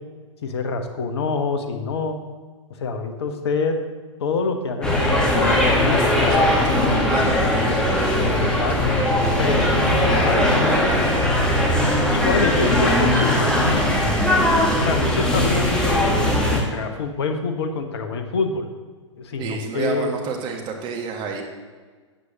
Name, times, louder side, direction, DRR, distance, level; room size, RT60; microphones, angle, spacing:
voice 1, 0.4-2.2 2.8-3.8 4.2-6.5 8.2-9.0 9.4-10.7 12.1-14.1 14.8-18.7 19.2-20.1, left 4 dB, 55° left, 7 dB, 1.2 m, -26 dB
sound 1, 4.8-16.6, left 1 dB, 5° left, 1.6 m, -19 dB
voice 2, 6.3-8.1 10.3-11.1 19.4-21.4, right 5 dB, 30° right, 2 dB, 1.6 m, -30 dB
12.5 x 8.0 x 2.9 m, 1.5 s
figure-of-eight pair, 110°, 16 cm